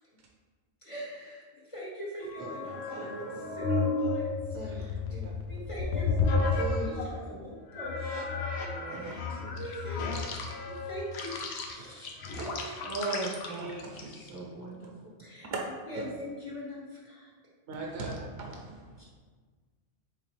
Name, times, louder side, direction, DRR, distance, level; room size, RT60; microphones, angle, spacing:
voice 1, 0.8-5.2 5.5-8.4 8.9-11.4 11.6-13.2 15.2-15.5 15.9-17.3 19.0-19.1, equal, 30° left, -6 dB, 0.9 m, -43 dB
sound 1, 2.2-7.2 7.7-14.4, left 3 dB, 65° left, 0.8 m, -32 dB
voice 2, 2.9-3.5 4.5-4.8 5.1-5.3 6.6-6.9 7.2-7.5 8.9-9.6 12.8-15.1, right 2 dB, 20° right, -6 dB, 0.8 m, -39 dB
voice 3, 8.7-9.1 11.8-11.9 12.4-12.5 13.6-14.1 15.5-15.6 15.9-16.0 17.7-18.9, right 3 dB, 65° right, 0 dB, 0.8 m, -39 dB
4.6 x 3.4 x 3.3 m, 1.5 s
omnidirectional pair, 1.2 m